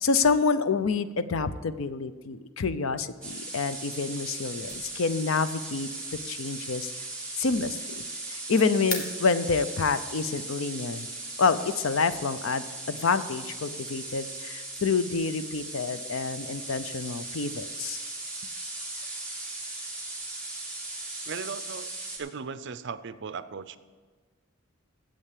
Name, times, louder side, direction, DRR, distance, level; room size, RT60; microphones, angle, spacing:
voice 1, 0.0-5.9 6.3-6.9 7.4-8.0 8.3-11.1 11.4-18.0, left 4 dB, 75° left, 13 dB, 0.6 m, -28 dB
sound 1, 3.2-22.2, right 2 dB, 5° left, 2.2 m, -38 dB
sound 2, 4.0-9.8, left 2 dB, 40° left, 1.7 m, -43 dB
voice 2, 21.2-21.9 22.2-23.8, right 5 dB, 55° right, 14 dB, 0.5 m, -37 dB
8.9 x 7.7 x 8.2 m, 1.4 s
head